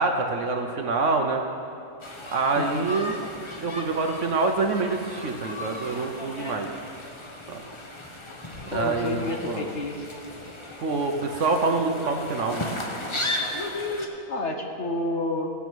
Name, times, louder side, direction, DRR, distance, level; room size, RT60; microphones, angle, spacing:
voice 1, 0.0-1.4 2.3-3.2 3.6-6.8 7.5-7.6 8.7-9.7 10.8-12.6, right 3 dB, 55° right, 4 dB, 1.0 m, -26 dB
sound 1, 2.0-14.1, left 2 dB, 25° left, 0.8 m, -35 dB
voice 2, 2.5-2.9 8.7-10.0 14.3-15.5, left 2 dB, 50° left, 3 dB, 1.0 m, -29 dB
16.0 x 7.0 x 6.1 m, 2.5 s
omnidirectional pair, 1.7 m